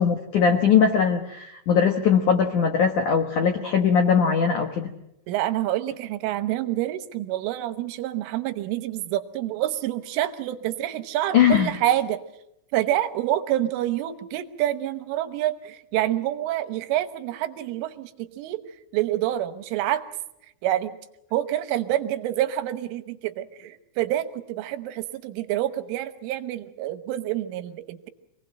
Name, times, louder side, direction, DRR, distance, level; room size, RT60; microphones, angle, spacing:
voice 1, 0.0-4.9 11.3-11.7, left 7 dB, 75° left, 5 dB, 1.8 m, -20 dB
voice 2, 5.3-12.2 12.7-18.6 18.9-20.0 20.6-20.9 21.3-28.1, right 13 dB, 80° right, 10 dB, 3.5 m, -27 dB
26.0 x 19.5 x 7.7 m, 0.82 s
omnidirectional pair, 5.7 m